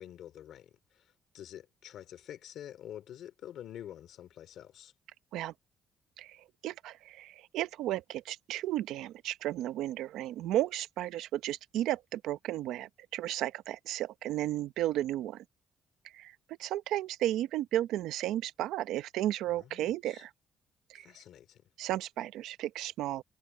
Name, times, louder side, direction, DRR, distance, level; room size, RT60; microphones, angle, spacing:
voice 1, 0.0-4.9 19.5-20.3 20.9-21.6, left 11 dB, 75° left, 2.8 m, -48 dB
voice 2, 6.2-15.4 16.1-20.3 20.9-21.1 21.8-23.2, right 13 dB, 90° right, 0.7 m, -34 dB
cardioid pair, 90°, 0 cm